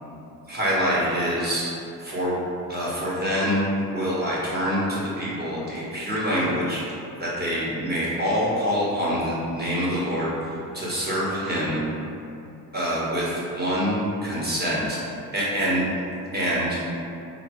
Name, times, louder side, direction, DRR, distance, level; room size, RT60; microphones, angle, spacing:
voice 1, 0.5-1.6 2.0-2.4 2.7-6.8 7.2-11.8 12.7-15.0 15.3-15.8 16.3-16.8, equal, 20° right, -7 dB, 1.3 m, -25 dB
3.6 x 2.1 x 3.0 m, 2.7 s
hypercardioid pair, 45°, 49 cm